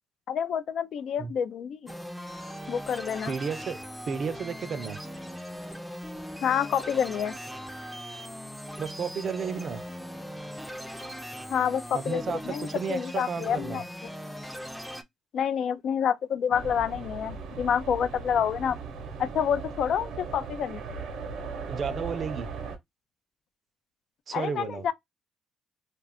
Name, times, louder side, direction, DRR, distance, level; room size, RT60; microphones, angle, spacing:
voice 1, 0.3-1.9 2.7-3.3 6.4-7.3 11.5-13.8 15.3-18.8 19.2-20.8 24.3-24.9, left 8 dB, 70° left, 0.4 m, -28 dB
sound 1, 1.9-15.0, equal, ahead, 0.4 m, -39 dB
voice 2, 3.3-3.8 4.1-5.0 8.8-9.8 11.9-13.8 21.7-22.5 24.3-24.9, right 6 dB, 50° right, 0.4 m, -33 dB
sound 2, 16.5-22.8, right 4 dB, 85° right, 0.7 m, -38 dB
2.4 x 2.3 x 3.4 m
cardioid pair, 90°, 0 cm